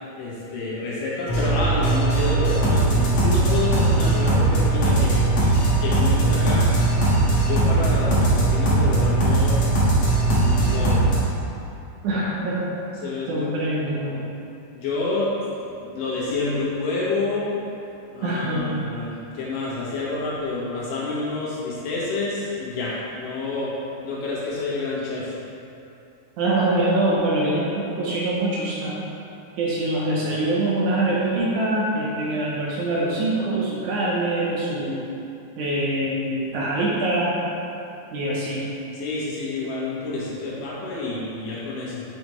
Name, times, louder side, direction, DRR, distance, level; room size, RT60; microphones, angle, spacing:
voice 1, 0.2-5.2 5.8-6.7 7.4-9.6 10.3-11.0 13.0-13.6 13.9-14.2 14.7-15.3 15.7-17.5 18.1-23.8 24.0-25.4 38.9-42.0, left 3 dB, 70° left, -7 dB, 3.0 m, -28 dB
sound 1, 1.3-11.2, right 2 dB, 50° left, 2.0 m, -19 dB
voice 2, 12.0-12.7 13.3-14.2 18.2-18.7 26.4-29.0 29.6-35.0 35.6-37.4 38.1-38.6, right 1 dB, 70° right, -6 dB, 2.0 m, -24 dB
6.9 x 6.6 x 3.1 m, 2.8 s
omnidirectional pair, 4.0 m